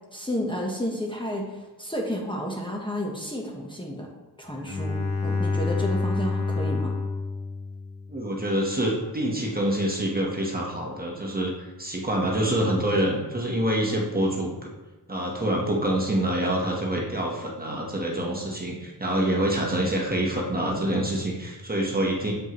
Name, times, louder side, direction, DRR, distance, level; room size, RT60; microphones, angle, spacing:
voice 1, 0.1-4.1 4.4-6.9, equal, 10° left, -2 dB, 1.1 m, -31 dB
Bowed string instrument, 4.5-8.3, left 3 dB, 85° left, 1.1 m, -28 dB
voice 2, 8.1-14.7 15.1-22.3, right 1 dB, 20° right, -2 dB, 1.2 m, -26 dB
7.4 x 5.4 x 3.1 m, 1.2 s
wide cardioid pair, 85°, 40 cm